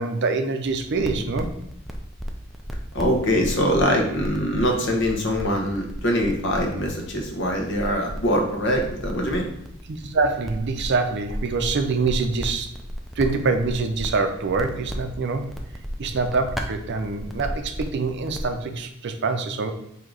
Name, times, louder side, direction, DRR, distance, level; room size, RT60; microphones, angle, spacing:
voice 1, 0.0-1.5 9.9-12.7 13.2-15.5 16.0-19.7, right 4 dB, 55° right, 7 dB, 0.5 m, -25 dB
sound 1, 0.6-18.5, equal, ahead, 0.4 m, -35 dB
voice 2, 2.9-9.5, equal, 60° left, 1 dB, 1.0 m, -23 dB
3.9 x 2.8 x 4.7 m, 0.75 s
head